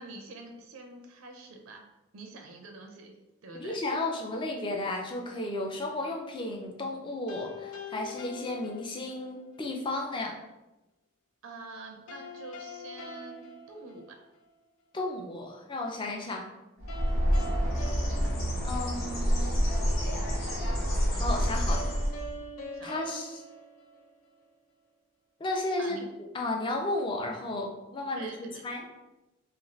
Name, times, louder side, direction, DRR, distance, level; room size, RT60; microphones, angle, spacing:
voice 1, 0.0-1.9 2.1-3.2 3.4-3.8 11.4-14.3 16.2-16.3 22.4-22.5 22.7-23.0 25.8-26.0 28.2-28.6, right 3 dB, 75° right, 3 dB, 0.4 m, -46 dB
voice 2, 3.5-10.4 14.9-16.4 18.6-19.6 21.1-21.9 22.8-23.4 25.4-26.0 26.3-28.8, left 2 dB, 25° left, 1 dB, 0.3 m, -33 dB
sound 1, 7.3-9.4 12.1-14.5 16.9-19.4 21.7-24.5, left 1 dB, 85° left, 0.4 m, -44 dB
Bird, 16.8-22.4, equal, 70° left, 0.8 m, -28 dB
2.5 x 2.4 x 3.1 m, 0.99 s
head